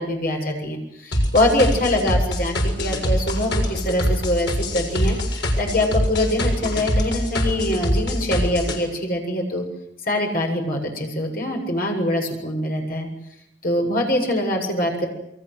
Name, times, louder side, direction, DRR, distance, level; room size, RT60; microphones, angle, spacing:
voice 1, 0.0-5.2 5.6-9.6 10.1-13.1 13.6-15.1, left 1 dB, 45° left, 2 dB, 7.8 m, -23 dB
sound 1, 1.1-8.8, equal, 65° left, 6.9 m, -23 dB
29.0 x 23.5 x 8.0 m, 0.80 s
head